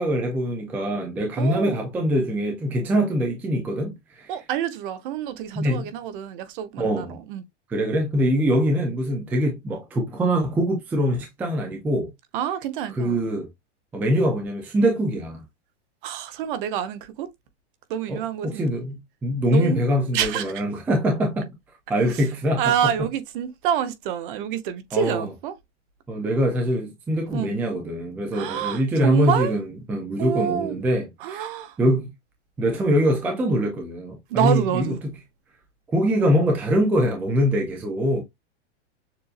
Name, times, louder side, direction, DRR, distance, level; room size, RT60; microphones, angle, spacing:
voice 1, 0.0-4.3 5.6-5.9 6.8-7.2 7.7-12.1 13.0-13.5 13.9-15.4 18.1-21.5 21.9-22.6 24.9-25.3 26.1-29.6 29.9-31.5 31.8-32.1 32.6-34.9 35.9-38.2, equal, 5° right, 0.4 m, -23 dB
voice 2, 1.4-1.8 4.3-7.4 12.3-13.2 16.0-17.3 17.9-18.7 19.5-19.8 20.1-20.5 22.1-22.3 22.6-25.5 27.3-27.6 28.3-29.5 30.2-30.8 31.2-31.8 34.3-35.0, right 9 dB, 45° right, 0.9 m, -27 dB
6.9 x 2.6 x 2.4 m
supercardioid pair, 165°, 36 cm